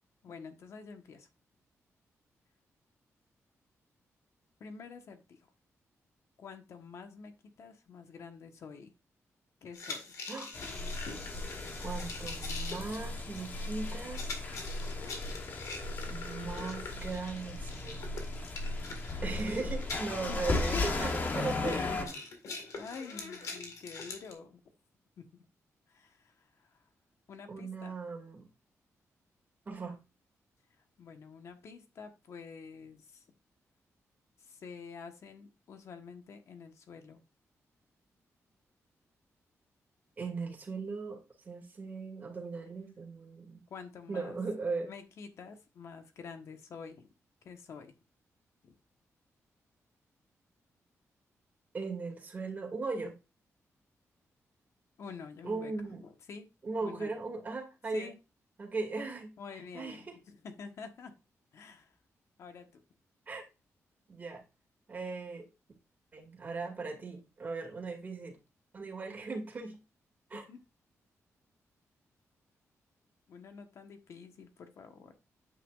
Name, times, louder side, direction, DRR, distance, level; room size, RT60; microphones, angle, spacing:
voice 1, 0.2-1.3 4.6-5.4 6.4-7.3 7.6-8.9 9.6-10.0 19.3-19.7 20.3-20.8 21.6-22.2 22.7-24.6 25.2-25.4 25.9-26.8 27.3-28.0 31.0-33.2 34.4-37.2 43.7-44.4 44.8-47.1 47.4-47.9 48.6-48.7 55.0-56.5 56.8-57.1 57.9-58.2 59.4-61.1 61.5-61.9 62.4-62.8 70.3-70.6 73.3-75.1, left 5 dB, 65° left, 6 dB, 1.3 m, -47 dB
sound 1, 9.7-24.3, left 4 dB, 80° left, 2.0 m, -44 dB
sound 2, 10.5-22.0, left 2 dB, 35° left, 1.1 m, -36 dB
voice 2, 11.8-14.4 16.0-18.0 19.2-22.1 27.5-28.5 29.7-30.0 40.2-43.6 44.1-44.9 51.7-53.1 55.4-56.0 56.6-58.1 58.6-59.3 59.7-60.2 63.3-63.4 64.1-64.4 64.9-65.5 66.1-68.4 68.7-69.8 70.3-70.4, right 3 dB, 30° right, 0 dB, 2.4 m, -38 dB
9.2 x 6.0 x 2.5 m, 0.28 s
wide cardioid pair, 175°, 5 cm